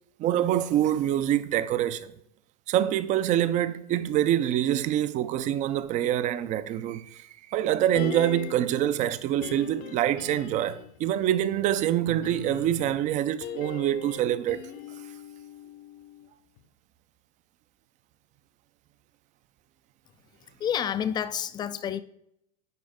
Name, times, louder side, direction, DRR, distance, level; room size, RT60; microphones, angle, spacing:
voice 1, 0.2-2.1 2.7-14.6, right 11 dB, 35° right, 0.5 m, -25 dB
sound 1, 7.9-8.8 9.4-11.0 12.1-16.3 16.6-16.7, left 9 dB, 50° left, 0.7 m, -40 dB
voice 2, 20.6-22.0, left 9 dB, 20° left, 0.4 m, -29 dB
9.6 x 4.8 x 3.6 m
supercardioid pair, 130°, 21 cm